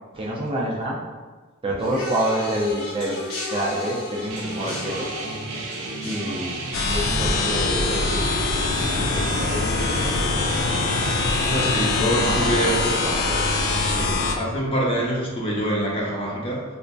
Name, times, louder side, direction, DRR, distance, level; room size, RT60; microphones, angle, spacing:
voice 1, 0.1-1.0 1.6-5.1 6.0-8.2 9.1-9.6 10.0-10.2 12.2-13.4, right 1 dB, 25° right, -3 dB, 0.4 m, -28 dB
sound 1, 1.8-11.2 11.4-12.0 12.8-12.9, left 2 dB, 85° left, 1.0 m, -36 dB
sound 2, 4.3-14.1, right 3 dB, 85° right, 0.5 m, -33 dB
sound 3, 6.7-14.4, left 3 dB, 70° left, 0.4 m, -23 dB
voice 2, 11.4-13.0 13.7-16.6, right 1 dB, 25° left, -4 dB, 0.7 m, -25 dB
4.1 x 2.5 x 2.2 m, 1.3 s
head